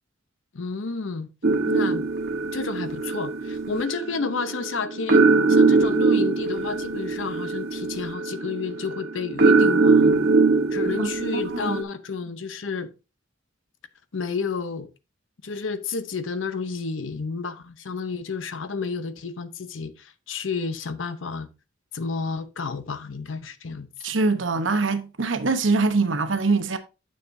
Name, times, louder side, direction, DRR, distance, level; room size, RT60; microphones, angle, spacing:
voice 1, 0.5-1.3 1.7-2.1 2.5-10.3 10.7-12.9 14.1-14.9 15.4-21.5 21.9-24.2, left 4 dB, 80° left, 0.8 m, -31 dB
sound 1, 1.4-11.8, right 3 dB, 60° right, 1.3 m, -22 dB
voice 2, 11.0-11.8 24.0-26.8, right 3 dB, 75° right, 1.0 m, -24 dB
9.7 x 6.7 x 2.7 m
head